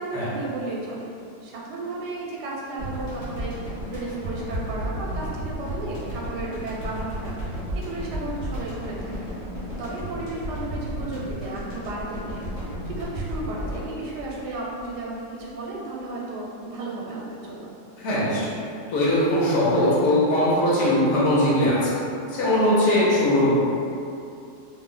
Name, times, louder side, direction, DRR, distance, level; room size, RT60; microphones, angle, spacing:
voice 1, 0.0-9.3 9.8-17.7, right 2 dB, 85° right, -4 dB, 1.1 m, -34 dB
sound 1, 2.8-15.2, equal, 50° left, 1.2 m, -33 dB
voice 2, 18.0-18.6 18.9-22.0 22.3-23.5, left 1 dB, 75° left, -8 dB, 1.2 m, -20 dB
2.9 x 2.0 x 3.6 m, 2.6 s
omnidirectional pair, 1.7 m